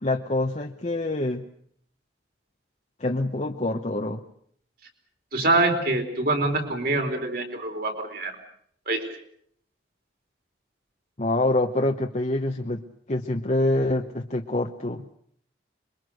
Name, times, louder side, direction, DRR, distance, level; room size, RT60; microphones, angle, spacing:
voice 1, 0.0-1.4 3.0-4.2 11.2-15.0, left 2 dB, 35° left, 3 dB, 1.0 m, -26 dB
voice 2, 5.3-8.3 8.9-9.1, right 2 dB, 50° right, 5 dB, 4.2 m, -25 dB
26.5 x 23.0 x 6.5 m, 0.64 s
head